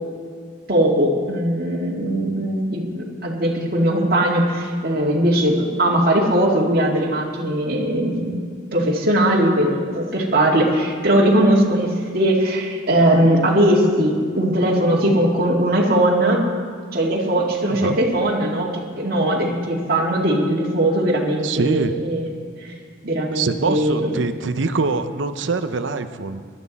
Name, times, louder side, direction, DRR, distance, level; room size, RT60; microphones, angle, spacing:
voice 1, 0.7-8.4 8.7-11.9 12.1-16.4 16.9-18.7 19.0-22.3 22.6-22.7 23.0-24.1, right 1 dB, 50° right, -3 dB, 2.1 m, -19 dB
voice 2, 21.4-21.9 23.3-26.4, right 4 dB, 70° right, 9 dB, 0.7 m, -24 dB
20.0 x 12.0 x 4.1 m, 2.1 s
head